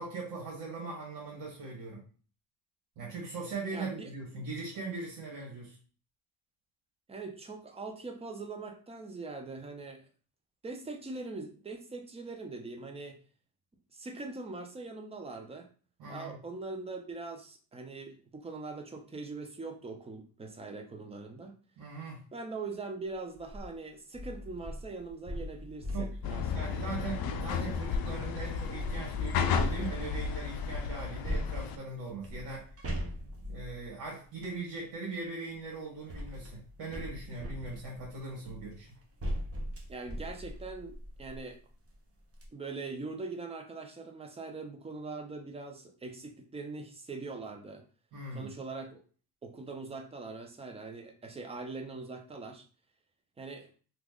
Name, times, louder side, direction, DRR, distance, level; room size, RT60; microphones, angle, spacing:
voice 1, 0.0-2.0 3.0-5.8 16.0-16.4 21.8-22.2 25.9-32.7 33.5-38.9 48.1-48.5, right 3 dB, 80° right, -5 dB, 1.5 m, -40 dB
voice 2, 3.7-4.1 7.1-10.1 10.6-13.2 13.9-15.7 16.1-21.6 22.3-26.8 39.9-41.6 42.5-47.8 48.3-49.0 49.4-52.6 53.4-53.7, right 3 dB, 15° right, 5 dB, 0.5 m, -42 dB
sound 1, 23.3-23.7 24.1-28.2 28.8-30.3 31.2-34.6 35.6-41.5 41.9-42.0 42.3-42.5, equal, 35° right, 0.9 m, -40 dB
sound 2, 26.2-31.8, left 7 dB, 60° left, 0.5 m, -33 dB
2.9 x 2.5 x 3.6 m, 0.39 s
cardioid pair, 120°, 42 cm